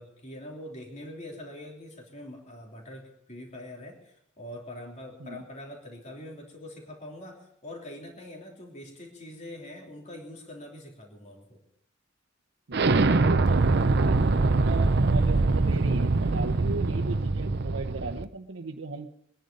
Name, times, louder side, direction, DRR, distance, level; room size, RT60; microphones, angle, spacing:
voice 1, 0.0-11.6, left 1 dB, 35° left, 0 dB, 3.2 m, -43 dB
Explosion, 12.7-18.2, right 3 dB, 55° right, 0.6 m, -23 dB
voice 2, 12.7-19.1, right 3 dB, 90° right, -1 dB, 0.9 m, -37 dB
23.0 x 10.5 x 5.4 m, 0.74 s
head